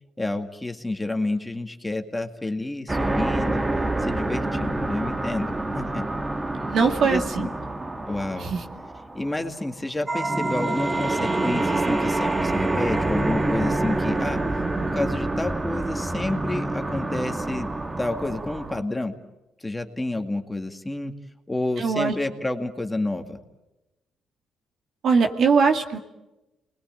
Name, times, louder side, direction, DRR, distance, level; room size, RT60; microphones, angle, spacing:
voice 1, 0.2-3.6 4.0-6.0 7.0-7.5 8.0-8.5 9.1-14.4 14.8-17.7 18.0-19.2 19.6-21.1 21.5-23.4, left 2 dB, 15° left, 6 dB, 2.1 m, -29 dB
sound 1, 2.9-9.7 10.1-18.8, right 2 dB, 20° right, 1.7 m, -27 dB
voice 2, 6.7-7.5 8.4-8.6 21.8-22.1 25.0-26.0, right 5 dB, 65° right, 5 dB, 2.1 m, -21 dB
29.5 x 20.5 x 9.1 m, 1.0 s
cardioid pair, 90°, 0 cm